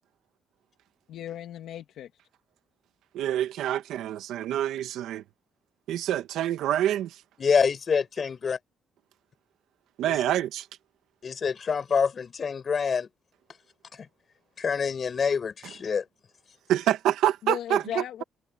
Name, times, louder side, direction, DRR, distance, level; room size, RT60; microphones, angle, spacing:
voice 1, 1.1-2.1 17.4-18.2, left 11 dB, 80° left, 2.1 m, -35 dB
voice 2, 3.1-5.2 5.9-7.1 10.0-10.6 16.7-18.0, right 12 dB, 85° right, 1.6 m, -26 dB
voice 3, 7.4-8.6 10.0-10.2 11.2-13.1 14.0-14.1 14.6-16.0, left 6 dB, 45° left, 6.3 m, -26 dB
cardioid pair, 90°, 0 cm